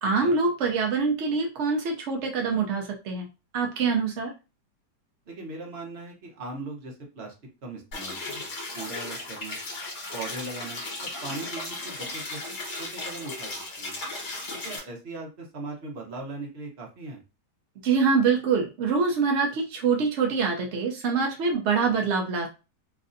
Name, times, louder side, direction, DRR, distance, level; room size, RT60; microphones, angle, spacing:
voice 1, 0.0-3.3 3.5-4.3 17.8-22.5, right 5 dB, 75° right, 2 dB, 0.6 m, -25 dB
voice 2, 5.3-7.3 7.6-8.5 8.7-9.6 10.1-10.8 11.2-13.5 13.8-14.0 14.6-17.2, right 2 dB, 45° right, 0 dB, 1.0 m, -39 dB
sound 1, 7.9-14.8, left 2 dB, 55° left, 1.6 m, -36 dB
3.2 x 2.5 x 2.5 m, 0.29 s
omnidirectional pair, 1.9 m